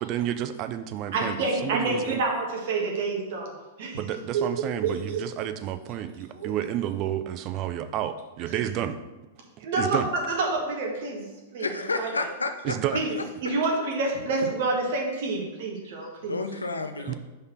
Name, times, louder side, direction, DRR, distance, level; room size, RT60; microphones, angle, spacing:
voice 1, 0.0-2.2 4.0-9.0 9.6-10.1 12.6-13.0 17.1-17.2, right 11 dB, 35° right, 10 dB, 0.5 m, -30 dB
voice 2, 1.1-3.5 3.8-4.0 4.3-4.4 4.8-5.2 6.3-6.5 9.6-11.2 11.5-11.7 11.9-12.1 12.9-16.4 17.0-17.1, right 3 dB, 50° right, 0 dB, 1.6 m, -28 dB
voice 3, 11.6-12.8 16.2-17.1, left 3 dB, 75° left, 8 dB, 0.5 m, -30 dB
5.3 x 4.0 x 5.9 m, 1.1 s
figure-of-eight pair, 100°, 0 cm